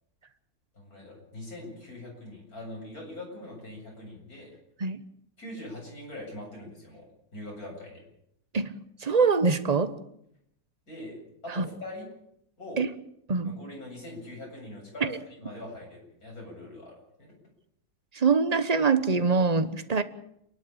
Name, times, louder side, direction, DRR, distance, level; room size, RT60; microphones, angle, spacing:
voice 1, 0.7-4.6 5.4-7.1 7.3-8.0 10.9-12.1 12.6-12.8 13.4-17.3, left 1 dB, 65° left, -1 dB, 8.6 m, -42 dB
voice 2, 8.5-9.9 11.5-11.7 12.8-12.9 13.3-13.6 15.0-15.1 18.1-20.0, right 4 dB, 30° right, 12 dB, 1.1 m, -24 dB
28.5 x 11.5 x 8.8 m, 0.75 s
omnidirectional pair, 1.7 m